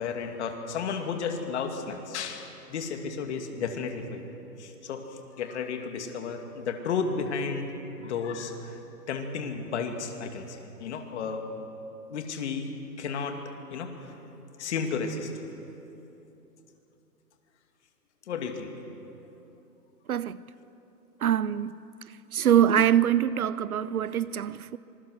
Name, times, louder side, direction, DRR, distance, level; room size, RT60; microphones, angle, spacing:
voice 1, 0.0-4.3 4.6-7.7 8.0-8.8 9.1-11.4 12.1-12.7 13.0-13.4 13.7-14.1 14.6-15.3 18.3-18.7, left 5 dB, 40° left, 2.4 m, -33 dB
voice 2, 20.1-20.4 21.2-21.8 22.3-24.8, right 10 dB, 60° right, 0.6 m, -24 dB
26.0 x 21.5 x 6.4 m
hypercardioid pair, 150°, 50 cm